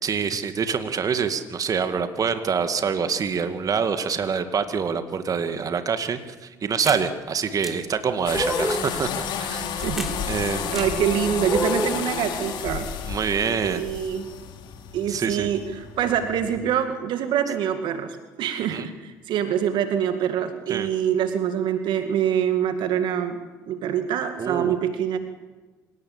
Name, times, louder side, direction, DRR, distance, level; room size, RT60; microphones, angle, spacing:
voice 1, 0.0-9.7 10.3-10.9 13.1-13.8 15.1-15.5 18.7-18.9 20.7-20.9 24.4-24.8, right 6 dB, 40° right, 9 dB, 2.2 m, -26 dB
sound 1, 6.9-7.0 7.6-7.7 8.3-8.9 10.0-10.1 10.7-10.9 11.5-12.0, equal, 5° right, 3.9 m, -27 dB
sound 2, 8.3-16.6, left 7 dB, 60° left, 3.0 m, -32 dB
voice 2, 9.8-10.2 10.7-12.9 13.6-14.3 14.9-25.2, right 9 dB, 60° right, 8 dB, 2.1 m, -25 dB
26.0 x 18.5 x 8.8 m, 1.3 s
hypercardioid pair, 55°, 9 cm